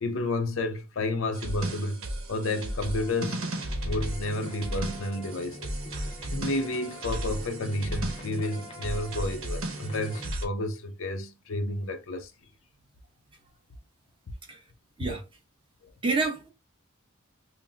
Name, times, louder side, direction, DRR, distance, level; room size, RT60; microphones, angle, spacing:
voice 1, 0.0-3.5 3.8-5.8 6.3-12.3 15.8-15.9, left 2 dB, 70° left, 0.6 m, -31 dB
sound 1, 1.3-10.4, right 1 dB, 70° right, 1.0 m, -35 dB
sound 2, 2.6-10.3, equal, 25° left, 0.8 m, -43 dB
voice 2, 16.0-16.5, right 3 dB, 25° right, 1.0 m, -28 dB
5.5 x 2.0 x 2.6 m
head